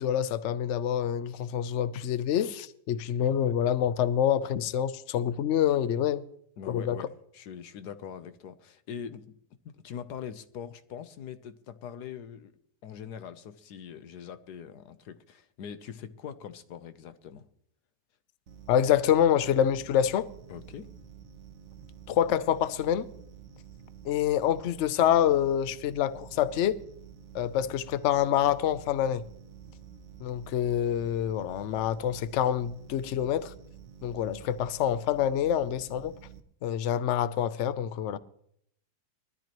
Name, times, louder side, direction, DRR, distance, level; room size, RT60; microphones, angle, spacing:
voice 1, 0.0-6.2 6.7-7.0 18.7-20.3 22.1-23.1 24.0-26.8 27.3-29.2 30.2-33.5 34.0-36.1 36.6-38.2, left 10 dB, 60° left, 0.8 m, -26 dB
voice 2, 6.6-9.4 9.6-12.5 12.8-17.5 20.5-20.9, left 8 dB, 90° left, 1.4 m, -42 dB
sound 1, 18.5-36.4, right 7 dB, 55° right, 1.1 m, -49 dB
21.0 x 13.0 x 3.0 m
omnidirectional pair, 1.7 m